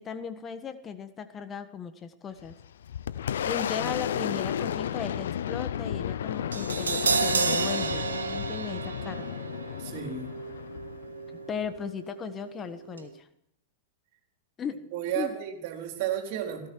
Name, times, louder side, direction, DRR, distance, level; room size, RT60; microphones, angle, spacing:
voice 1, 0.0-2.6 3.4-9.4 11.3-13.3 14.6-14.8 15.1-15.3, left 7 dB, 25° left, 10 dB, 1.3 m, -37 dB
Boom, 2.4-11.8, left 9 dB, 70° left, 0.7 m, -33 dB
Crash cymbal, 6.5-12.7 12.9-13.1, right 4 dB, 80° right, 1.6 m, -31 dB
voice 2, 9.8-10.3 14.9-16.7, right 10 dB, 50° right, 3 dB, 4.1 m, -32 dB
18.0 x 15.5 x 4.7 m, 0.79 s
figure-of-eight pair, 100°, 0 cm